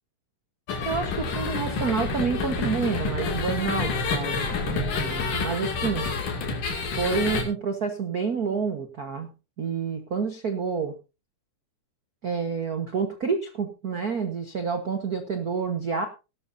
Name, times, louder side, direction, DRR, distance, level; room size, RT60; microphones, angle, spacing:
sound 1, 0.7-7.4, left 4 dB, 75° left, 3.9 m, -28 dB
voice 1, 0.8-6.1 6.9-9.3 9.6-10.9 12.2-16.1, right 5 dB, 75° right, 5 dB, 0.8 m, -28 dB
18.0 x 12.0 x 2.7 m, 0.29 s
omnidirectional pair, 3.7 m